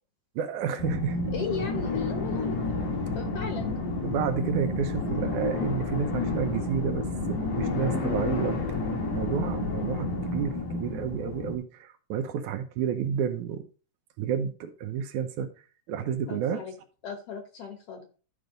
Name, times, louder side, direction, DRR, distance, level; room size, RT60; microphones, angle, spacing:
voice 1, 0.4-1.2 4.0-8.6 9.1-13.7 14.2-15.5 15.9-16.6, right 7 dB, 75° right, 2.1 m, -30 dB
sound 1, 0.8-11.6, left 2 dB, 85° left, 3.4 m, -30 dB
voice 2, 1.3-3.8 16.3-16.7 17.0-18.1, left 6 dB, 60° left, 1.8 m, -37 dB
12.0 x 5.2 x 3.8 m
omnidirectional pair, 3.7 m